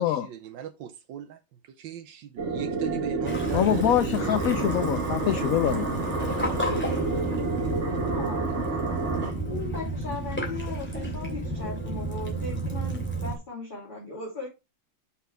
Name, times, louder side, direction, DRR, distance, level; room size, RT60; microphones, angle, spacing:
voice 1, 0.0-4.3, right 10 dB, 85° right, 1.4 m, -37 dB
sound 1, 2.4-9.3, right 3 dB, 40° right, 1.6 m, -29 dB
Waves surf / Splash splatter / Trickle dribble, 3.2-13.3, right 1 dB, 5° left, 2.4 m, -32 dB
voice 2, 3.5-5.9, left 12 dB, 75° left, 0.8 m, -25 dB
voice 3, 7.8-8.4 9.5-14.5, left 3 dB, 25° left, 3.2 m, -38 dB
6.1 x 5.7 x 4.7 m
omnidirectional pair, 2.0 m